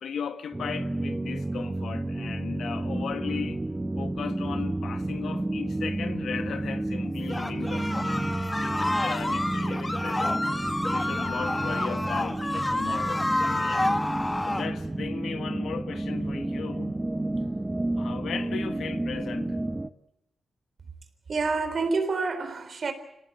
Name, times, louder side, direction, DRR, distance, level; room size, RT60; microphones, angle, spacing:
voice 1, 0.0-3.6 3.9-8.3 8.6-10.4 10.9-13.9 14.4-17.0 18.0-19.6, left 7 dB, 85° left, 1.5 m, -37 dB
sound 1, 0.5-19.9, right 2 dB, 20° right, 1.2 m, -31 dB
sound 2, 7.3-14.7, left 1 dB, 20° left, 1.8 m, -29 dB
voice 2, 21.3-22.9, right 4 dB, 60° right, 3.7 m, -27 dB
26.5 x 18.5 x 9.0 m
cardioid pair, 60°, 0 cm